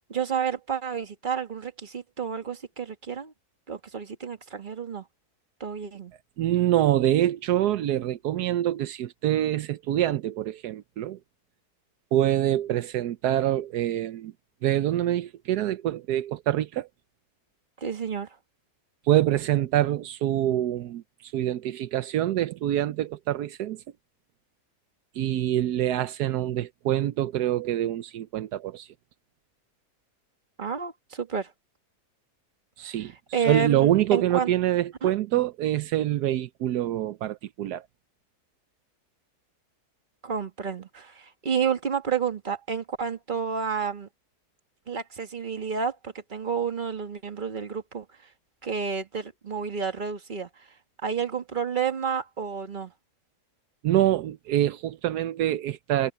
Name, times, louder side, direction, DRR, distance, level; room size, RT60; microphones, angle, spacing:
voice 1, 0.1-3.3 3.7-5.0 5.6-6.1 17.8-18.3 30.6-31.5 33.3-34.5 35.0-35.1 40.2-44.1 44.9-48.1 48.6-50.7 51.0-52.9, right 6 dB, 30° right, 1.7 m, -30 dB
voice 2, 6.4-11.2 12.1-14.3 14.6-16.9 19.1-23.8 25.1-28.9 32.8-33.1 33.4-37.8 53.8-56.1, right 12 dB, 80° right, 1.2 m, -25 dB
omnidirectional pair, 1.7 m